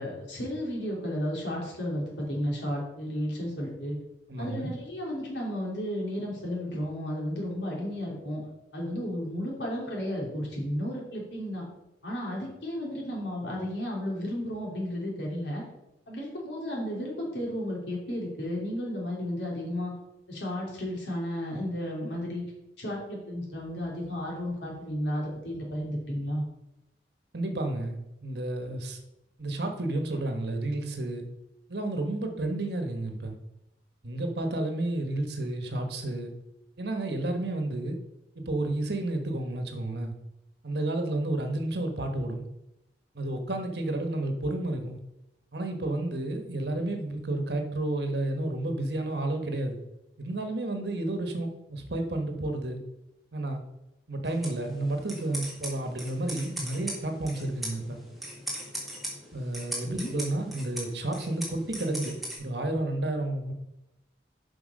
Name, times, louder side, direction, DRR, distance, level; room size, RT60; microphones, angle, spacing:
voice 1, 0.0-4.0 4.4-8.4 8.7-11.6 12.0-15.6 16.1-19.9 20.3-22.4 22.8-26.5 59.8-60.1, equal, 75° left, -2 dB, 3.2 m, -33 dB
voice 2, 4.3-4.7 27.3-29.0 29.4-31.2 31.7-33.4 34.0-36.3 36.8-38.0 38.3-40.1 40.6-42.4 43.1-45.0 45.5-49.8 50.2-52.8 53.3-53.6 54.1-58.0 59.3-63.5, right 2 dB, 65° right, 5 dB, 1.3 m, -31 dB
sound 1, 54.2-62.4, right 1 dB, ahead, 1.9 m, -39 dB
8.0 x 5.7 x 5.3 m, 0.90 s
head